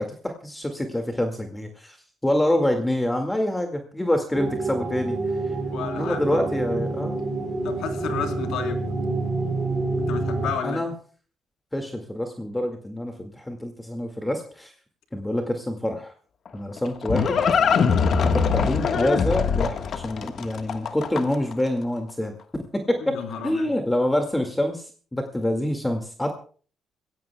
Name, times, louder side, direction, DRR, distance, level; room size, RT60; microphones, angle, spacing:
voice 1, 0.0-2.0 2.2-5.2 5.9-7.2 10.6-10.9 11.7-14.7 15.1-16.1 16.5-17.4 18.2-22.3 22.9-23.2 23.4-26.3, left 1 dB, 10° left, 4 dB, 2.0 m, -26 dB
sound 1, 4.3-10.5, right 3 dB, 35° right, 5.6 m, -27 dB
voice 2, 5.7-6.4 7.6-8.8 10.0-10.8 18.1-18.4 23.1-23.7, left 7 dB, 85° left, 4 dB, 3.5 m, -32 dB
Livestock farm animals working animals, 16.5-21.5, left 6 dB, 60° left, 1.4 m, -22 dB
28.5 x 16.0 x 2.3 m, 0.41 s
cardioid pair, 90°, 0 cm